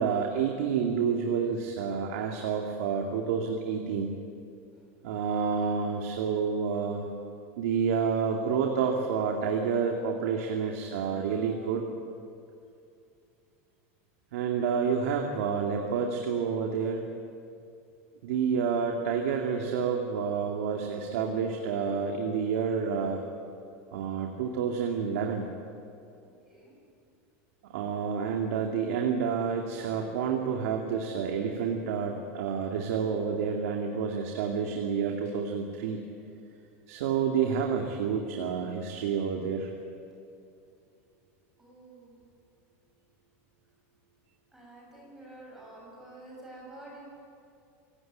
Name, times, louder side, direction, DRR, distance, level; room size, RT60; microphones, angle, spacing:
voice 1, 0.0-4.1 5.0-7.1 7.6-11.8 14.3-17.1 18.2-23.2 23.9-25.5 27.7-36.1 36.9-39.7, right 6 dB, 85° right, 2 dB, 2.5 m, -29 dB
voice 2, 26.2-26.7 41.6-42.1 44.5-47.0, right 2 dB, 5° right, -4 dB, 6.8 m, -49 dB
25.5 x 17.0 x 9.4 m, 2.5 s
supercardioid pair, 175°, 7 cm